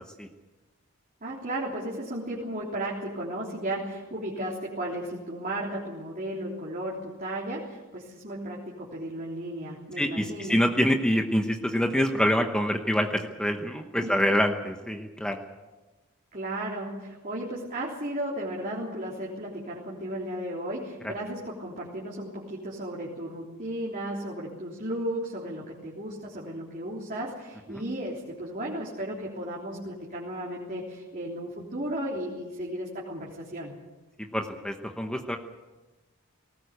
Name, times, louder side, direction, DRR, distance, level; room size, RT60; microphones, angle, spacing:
voice 1, 1.2-10.6 14.0-14.3 16.3-33.7, right 1 dB, 40° right, -4 dB, 3.5 m, -34 dB
voice 2, 10.0-15.4 34.3-35.4, equal, 5° left, 3 dB, 1.0 m, -26 dB
19.5 x 18.5 x 8.2 m, 1.2 s
head